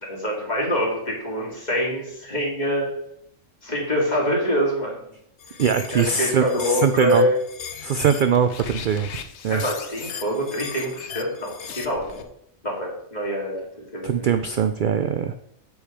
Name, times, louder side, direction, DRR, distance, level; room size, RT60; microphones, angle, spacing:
voice 1, 0.0-2.9 3.6-5.0 5.9-7.3 9.5-12.2 12.6-14.3, equal, 35° left, -3 dB, 2.5 m, -25 dB
sound 1, 5.4-12.2, left 7 dB, 65° left, 1.0 m, -37 dB
voice 2, 5.6-7.3 7.8-9.6 14.0-15.4, right 7 dB, 60° right, 9 dB, 0.5 m, -22 dB
8.1 x 5.0 x 5.0 m, 0.74 s
omnidirectional pair, 1.3 m